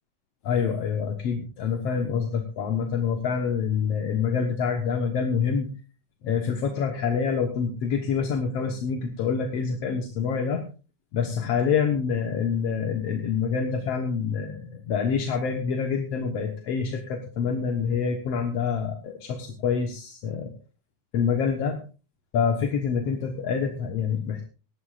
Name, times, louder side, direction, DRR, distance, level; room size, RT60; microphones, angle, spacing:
voice 1, 0.4-5.7 6.2-10.6 11.1-20.5 21.1-21.8 22.3-24.4, left 6 dB, 60° left, 3 dB, 2.0 m, -26 dB
19.0 x 13.5 x 2.5 m, 0.35 s
omnidirectional pair, 3.8 m